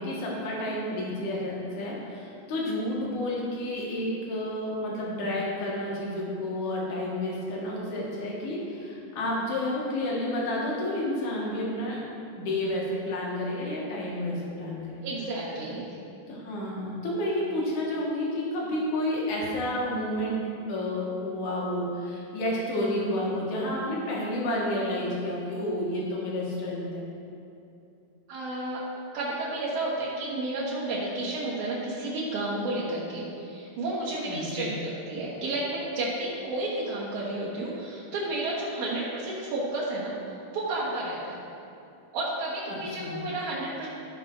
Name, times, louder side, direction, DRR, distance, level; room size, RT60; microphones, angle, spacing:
voice 1, 0.0-12.0 12.3-15.1 16.3-20.4 20.7-27.1 34.2-34.7 42.7-43.3, left 1 dB, 55° left, -4 dB, 2.7 m, -30 dB
voice 2, 15.0-15.9 28.3-28.8 29.1-40.1 40.5-41.4 42.1-43.9, right 2 dB, 65° right, -7 dB, 2.0 m, -31 dB
13.5 x 5.6 x 3.8 m, 2.8 s
omnidirectional pair, 4.6 m